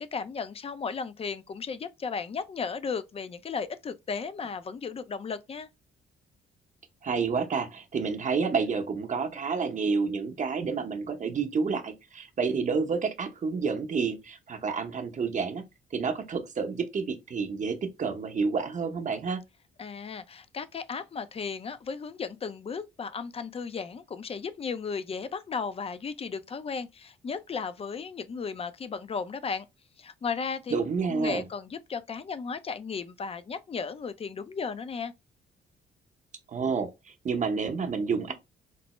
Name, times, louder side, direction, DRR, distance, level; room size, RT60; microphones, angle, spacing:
voice 1, 0.0-5.7 19.8-29.7 30.0-30.7 31.1-35.1, left 5 dB, 30° left, 0.4 m, -35 dB
voice 2, 7.0-15.6 15.9-19.4 30.7-31.4 36.5-38.3, right 5 dB, 40° right, 0.8 m, -29 dB
4.5 x 2.0 x 3.0 m
cardioid pair, 90°, 20 cm